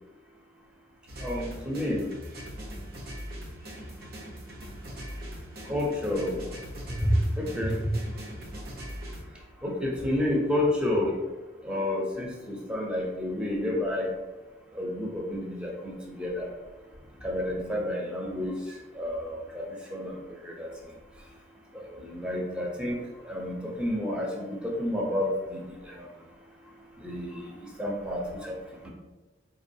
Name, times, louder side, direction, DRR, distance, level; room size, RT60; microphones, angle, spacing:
sound 1, 1.1-9.2, equal, 55° right, 0.8 m, -40 dB
voice 1, 1.2-2.1 5.7-6.4 7.0-7.8 9.6-11.1 11.6-14.1 14.7-16.5 17.2-18.6 18.9-20.7 21.7-23.0 23.2-25.6 25.9-26.1 27.0-28.6, left 1 dB, 5° right, -2 dB, 0.7 m, -30 dB
4.8 x 3.0 x 2.7 m, 1.2 s
head